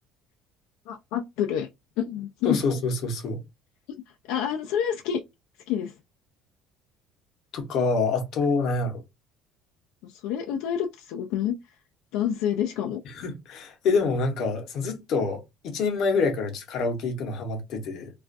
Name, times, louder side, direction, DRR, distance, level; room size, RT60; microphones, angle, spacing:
voice 1, 0.9-1.7 2.0-2.6 4.3-5.2 5.7-6.0 10.0-11.6 12.1-13.0, left 9 dB, 85° left, 0.3 m, -28 dB
voice 2, 2.4-3.4 7.5-9.0 13.1-18.1, left 4 dB, 50° left, 0.8 m, -26 dB
2.4 x 2.2 x 2.5 m
cardioid pair, 165°, 0 cm